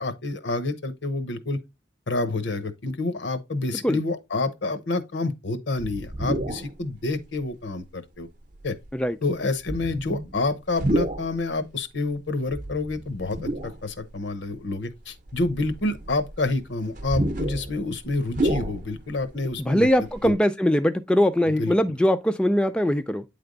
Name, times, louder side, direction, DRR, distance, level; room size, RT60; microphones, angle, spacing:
voice 1, 0.0-1.6 2.1-8.3 8.6-8.8 9.2-20.3 21.6-22.0, left 2 dB, 70° left, 0.9 m, -28 dB
sound 1, 5.8-6.7 7.4-7.5 8.5-8.9 9.6-11.4 12.5-14.1 14.6-14.7 15.3-19.2 19.5-19.6 19.8-20.3, right 1 dB, 40° right, 0.7 m, -30 dB
voice 2, 19.7-23.2, equal, 5° left, 0.3 m, -21 dB
8.8 x 3.4 x 3.8 m
head